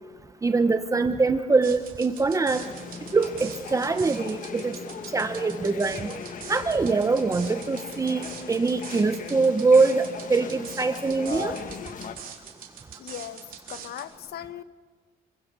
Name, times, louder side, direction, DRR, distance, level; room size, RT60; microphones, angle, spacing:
voice 1, 0.4-2.6 3.1-4.8 5.1-6.2 6.5-11.6, right 4 dB, 20° right, 9 dB, 0.9 m, -23 dB
sound 1, 1.6-14.1, right 8 dB, 60° right, 4.0 m, -43 dB
sound 2, 2.5-12.2, left 6 dB, 55° left, 1.6 m, -39 dB
voice 2, 13.0-14.6, left 11 dB, 75° left, 13 dB, 1.2 m, -39 dB
27.5 x 24.0 x 6.8 m, 1.4 s
cardioid pair, 140°, 17 cm